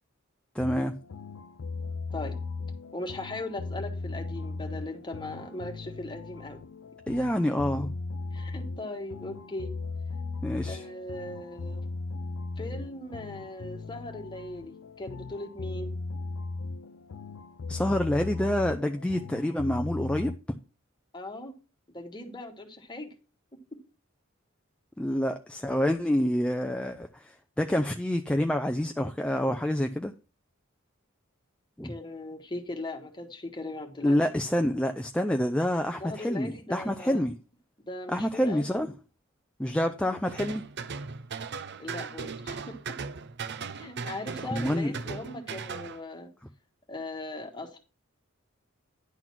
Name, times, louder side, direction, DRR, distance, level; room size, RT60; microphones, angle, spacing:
voice 1, 0.5-0.9 7.1-7.9 10.4-10.8 17.7-20.3 25.0-30.1 31.8-31.9 34.0-37.3 38.1-38.9 39.6-40.6 44.5-44.9, equal, 5° left, 0.5 m, -27 dB
sound 1, 0.6-20.4, left 3 dB, 90° left, 0.5 m, -37 dB
voice 2, 2.9-6.6 8.3-9.7 10.6-11.8 12.6-15.9 21.1-21.5 21.9-23.1 31.8-34.2 36.0-37.2 37.9-38.7 41.8-42.6 43.7-46.3 46.9-47.8, left 2 dB, 25° left, 1.5 m, -39 dB
sound 2, 40.3-46.0, right 5 dB, 55° right, 0.6 m, -38 dB
10.5 x 4.0 x 6.0 m
head